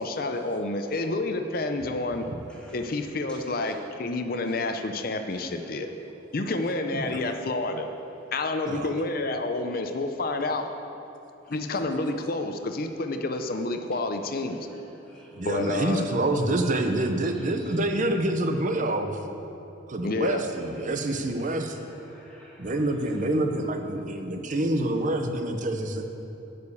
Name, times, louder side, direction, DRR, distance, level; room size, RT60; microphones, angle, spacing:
voice 1, 0.0-2.3 2.7-5.9 6.3-7.9 8.3-10.7 11.5-14.7 15.4-16.1 20.0-20.4, left 2 dB, 50° left, 6 dB, 0.6 m, -29 dB
voice 2, 14.3-15.9 17.2-17.8 20.2-20.3 20.8-22.9, equal, 5° left, -7 dB, 2.3 m, -51 dB
voice 3, 15.3-19.2 19.9-21.8 22.6-26.0, right 1 dB, 40° right, 6 dB, 0.7 m, -27 dB
11.0 x 5.1 x 8.3 m, 2.9 s
head